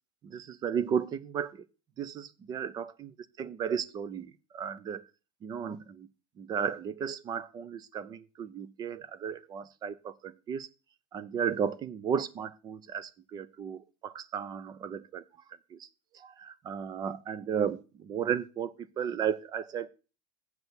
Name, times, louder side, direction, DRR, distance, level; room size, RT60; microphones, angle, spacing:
voice 1, 0.2-1.7 2.0-5.0 5.4-6.1 6.4-10.7 11.1-15.2 15.7-15.9 16.1-19.9, right 7 dB, 25° right, 19 dB, 0.6 m, -34 dB
8.0 x 6.2 x 7.0 m, 0.33 s
cardioid pair, 165°, 17 cm